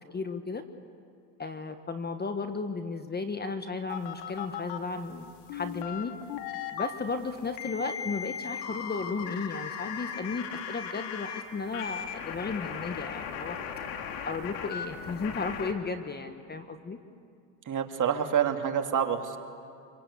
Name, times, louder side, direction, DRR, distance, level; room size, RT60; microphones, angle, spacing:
voice 1, 0.1-0.6 1.4-6.1 6.7-13.6 14.2-17.0, left 4 dB, 20° left, 8 dB, 1.3 m, -34 dB
sound 1, 3.9-4.8 5.5-6.9 7.6-11.4 11.7-15.7, left 7 dB, 75° left, 2.7 m, -37 dB
voice 2, 17.7-19.4, right 8 dB, 35° right, 5 dB, 2.4 m, -27 dB
26.0 x 24.0 x 8.4 m, 2.4 s
supercardioid pair, 100°, 49 cm